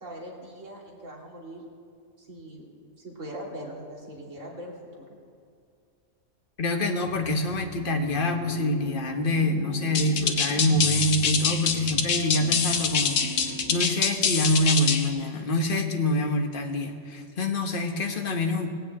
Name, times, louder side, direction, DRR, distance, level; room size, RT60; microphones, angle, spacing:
voice 1, 0.0-1.6 2.2-2.6 3.0-5.0, right 1 dB, 60° right, -3 dB, 3.1 m, -41 dB
voice 2, 6.6-18.7, left 1 dB, 40° left, 4 dB, 1.3 m, -26 dB
sound 1, 7.0-13.9, right 1 dB, 15° right, 1.0 m, -40 dB
sound 2, 9.9-15.1, left 6 dB, 75° left, 1.5 m, -25 dB
19.0 x 6.8 x 8.6 m, 2.3 s
omnidirectional pair, 1.4 m